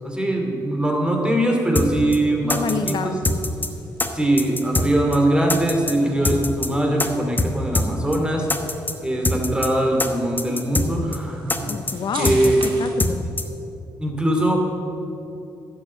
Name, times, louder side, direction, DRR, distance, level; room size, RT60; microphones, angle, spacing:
voice 1, 0.0-3.2 4.1-8.5 9.0-11.7 12.2-12.6 14.0-14.6, right 1 dB, 10° right, 1 dB, 2.7 m, -21 dB
sound 1, 1.8-1.9 2.1-2.2 2.5-2.9 3.2-3.7 4.0-4.1 4.4-4.9 5.1-5.2 5.5-5.9 6.2-6.7 7.0-7.1 7.4-7.5 7.7-8.2 8.5-8.9 9.2-9.7 10.0-10.1 10.4-10.9 11.1-11.2 11.5-11.9 12.2-12.7 13.0-13.1 13.4-13.5, left 2 dB, 20° left, 1.2 m, -22 dB
voice 2, 2.4-3.1 11.7-13.2, left 6 dB, 60° left, 9 dB, 0.6 m, -28 dB
sound 2, 2.4-13.1, right 4 dB, 70° right, 2.3 m, -43 dB
10.5 x 7.8 x 7.3 m, 2.8 s
supercardioid pair, 60°, 9 cm